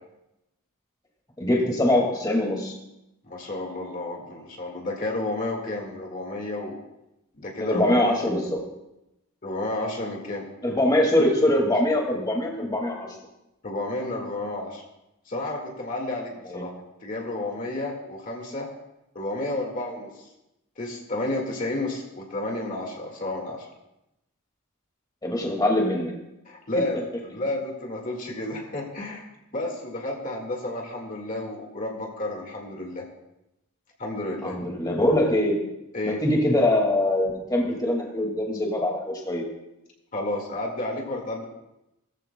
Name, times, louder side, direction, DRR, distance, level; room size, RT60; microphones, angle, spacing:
voice 1, 1.4-2.7 7.6-8.7 10.6-13.1 16.5-16.6 25.2-26.1 34.4-35.5 36.0-39.4, left 1 dB, 20° left, 0 dB, 2.0 m, -23 dB
voice 2, 3.2-6.8 7.4-8.2 9.4-10.5 11.7-11.8 13.6-14.8 15.3-16.7 17.0-18.7 19.2-20.3 20.8-23.7 26.5-27.1 27.3-33.0 34.0-34.6 35.9-36.2 40.1-41.4, left 2 dB, 40° left, 0 dB, 1.9 m, -31 dB
20.0 x 14.0 x 2.2 m, 0.91 s
head